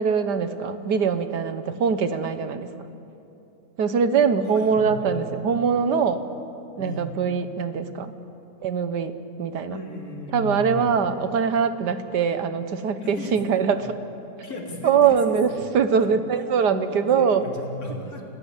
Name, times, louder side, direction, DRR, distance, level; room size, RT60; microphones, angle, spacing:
voice 1, 0.0-2.7 3.8-6.2 6.8-8.1 8.6-9.1 9.4-9.8 10.3-13.9 14.8-17.4, right 6 dB, 75° right, 10 dB, 1.7 m, -22 dB
voice 2, 4.5-5.5 6.7-7.1 9.7-10.9 13.0-13.9 14.4-15.6 16.0-16.4 16.9-18.3, left 1 dB, 55° left, -1 dB, 3.8 m, -36 dB
29.5 x 16.5 x 8.2 m, 2.9 s
omnidirectional pair, 1.8 m